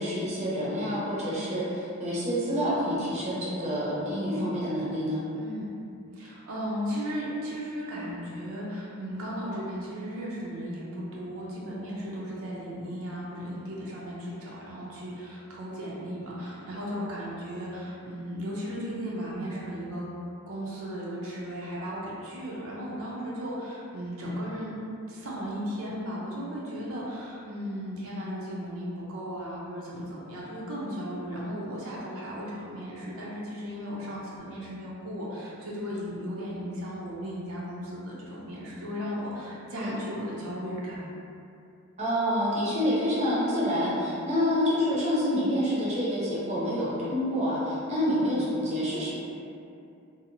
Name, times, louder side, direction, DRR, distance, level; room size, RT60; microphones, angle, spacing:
voice 1, 0.0-5.2 39.7-39.9 42.0-49.1, equal, 30° right, -8 dB, 0.6 m, -27 dB
voice 2, 4.3-4.8 5.3-5.7 6.1-20.1 20.5-41.0, equal, 75° right, -6 dB, 0.5 m, -36 dB
2.7 x 2.0 x 2.6 m, 2.6 s
head